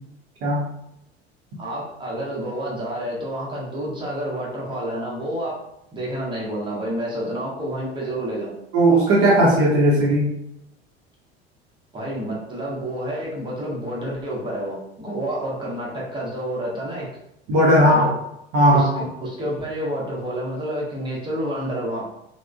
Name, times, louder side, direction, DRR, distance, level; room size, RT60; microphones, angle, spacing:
voice 1, 1.6-5.6 5.9-8.5 11.9-17.1 17.8-18.1 18.7-22.1, right 1 dB, 15° right, -5 dB, 1.0 m, -29 dB
voice 2, 8.7-10.3 17.5-18.1 18.5-19.1, right 1 dB, 45° right, -5 dB, 0.7 m, -16 dB
3.5 x 2.1 x 2.2 m, 0.80 s
figure-of-eight pair, 65°, 32 cm